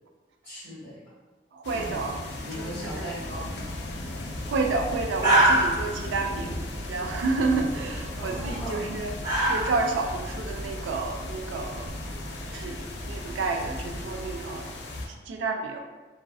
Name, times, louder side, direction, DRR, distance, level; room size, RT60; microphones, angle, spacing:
voice 1, 0.4-1.0 1.7-1.9 2.4-3.7 3.9-4.0 8.2-9.0, equal, 10° left, -12 dB, 1.0 m, -38 dB
voice 2, 1.5-2.2 2.6-3.1 4.5-9.1 9.5-11.9 12.5-14.7 15.0-15.8, right 3 dB, 85° right, 3 dB, 0.3 m, -30 dB
sound 1, 1.6-15.1, left 1 dB, 70° left, 0.4 m, -37 dB
sound 2, 3.4-14.4, right 1 dB, 25° right, 0.7 m, -30 dB
2.4 x 2.4 x 2.3 m, 1.3 s
head